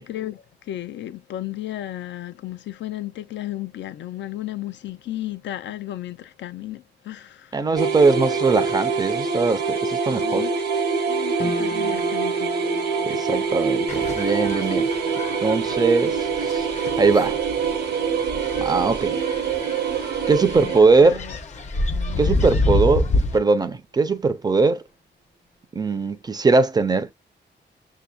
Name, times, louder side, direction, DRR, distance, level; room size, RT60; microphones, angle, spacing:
voice 1, 0.0-7.7 10.1-10.5 11.1-12.6 13.1-13.6 20.6-21.4 21.9-22.4, left 14 dB, 80° left, 0.4 m, -34 dB
voice 2, 7.5-10.5 13.0-14.9 15.4-16.7 17.0-17.4 18.6-19.2 20.3-21.2 22.2-24.8 25.7-27.1, right 4 dB, 20° right, 0.4 m, -20 dB
sound 1, 7.8-20.8, right 5 dB, 65° right, 0.7 m, -25 dB
sound 2, 11.4-23.8 24.1-25.0 25.5-25.6, right 1 dB, 60° left, 1.2 m, -41 dB
sound 3, 13.9-23.4, left 2 dB, 40° left, 0.6 m, -28 dB
6.8 x 2.6 x 2.2 m
wide cardioid pair, 165°, 18 cm